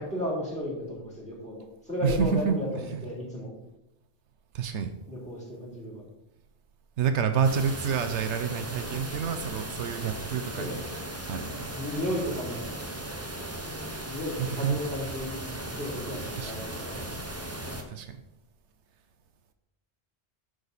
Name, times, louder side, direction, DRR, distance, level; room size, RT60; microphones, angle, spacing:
voice 1, 0.0-3.5 5.1-6.0 10.6-10.7 11.7-12.6 14.1-15.3 15.7-17.2, left 1 dB, 5° left, -5 dB, 3.5 m, -34 dB
voice 2, 2.0-3.0 4.5-4.9 7.0-10.8 11.3-11.6 14.4-14.8 16.3-16.7 17.9-18.2, right 6 dB, 80° right, 8 dB, 1.0 m, -28 dB
sound 1, 7.4-17.8, right 1 dB, 15° right, 0.8 m, -37 dB
10.0 x 6.3 x 4.0 m, 0.88 s
omnidirectional pair, 1.2 m